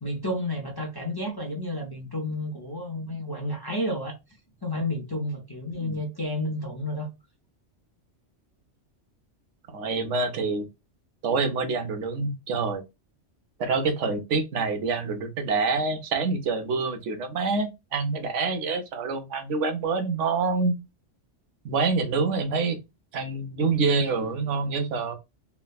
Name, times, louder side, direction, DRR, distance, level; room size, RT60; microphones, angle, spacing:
voice 1, 0.0-4.2 4.6-7.1, left 1 dB, 30° left, 0.5 m, -31 dB
voice 2, 9.7-10.7 11.2-12.8 13.6-20.7 21.6-22.8 23.1-25.2, right 4 dB, 75° right, 1.0 m, -26 dB
3.2 x 2.1 x 2.3 m
omnidirectional pair, 1.2 m